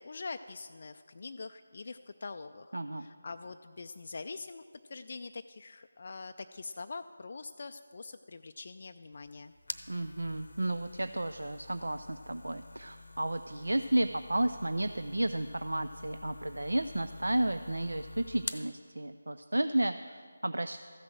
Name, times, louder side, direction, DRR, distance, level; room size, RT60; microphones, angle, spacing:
voice 1, 0.0-4.6 4.9-9.5, left 4 dB, 50° left, 8 dB, 0.3 m, -44 dB
voice 2, 2.7-3.1 9.9-20.8, right 1 dB, 80° right, 10 dB, 0.4 m, -32 dB
sound 1, 9.1-18.7, left 2 dB, 70° left, 0.7 m, -47 dB
14.0 x 6.2 x 7.6 m, 2.1 s
figure-of-eight pair, 160°, 0 cm